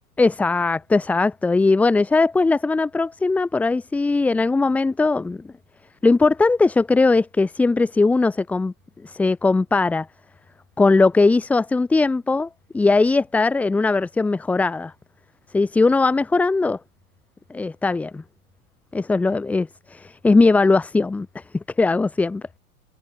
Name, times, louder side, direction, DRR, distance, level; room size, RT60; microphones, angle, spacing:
voice 1, 0.2-5.4 6.0-8.7 9.0-10.1 10.8-12.5 12.7-14.9 15.5-16.8 17.5-18.2 18.9-21.4 21.8-22.4, left 3 dB, 5° left, 0.5 m, -19 dB
figure-of-eight pair, 105°, 44 cm